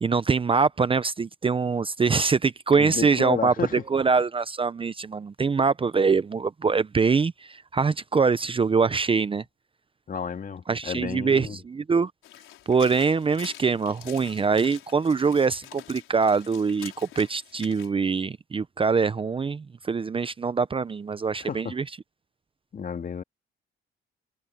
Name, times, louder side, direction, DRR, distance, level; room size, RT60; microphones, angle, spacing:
voice 1, 0.0-9.4 10.7-12.1 12.7-21.8, right 5 dB, 25° right, 0.6 m, -24 dB
voice 2, 2.8-3.8 10.1-11.6 21.4-21.7 22.7-23.2, left 6 dB, 45° left, 2.3 m, -32 dB
sound 1, 12.2-17.9, left 14 dB, 90° left, 4.7 m, -46 dB
cardioid pair, 90°, 20 cm